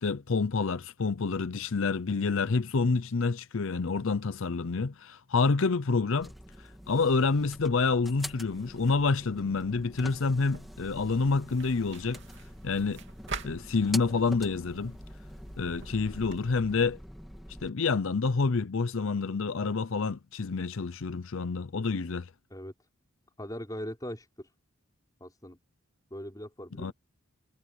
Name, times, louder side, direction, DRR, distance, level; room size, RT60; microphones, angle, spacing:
voice 1, 0.0-6.3 6.6-12.2 12.6-13.0 13.4-15.0 15.6-17.0 17.6-22.3 26.8-26.9, left 4 dB, 65° left, 0.6 m, -28 dB
sound 1, 6.2-17.7, equal, ahead, 2.8 m, -45 dB
sound 2, 10.4-16.5, right 4 dB, 55° right, 2.9 m, -46 dB
voice 2, 23.4-24.5 25.2-25.6 26.1-26.9, equal, 15° left, 5.4 m, -40 dB
head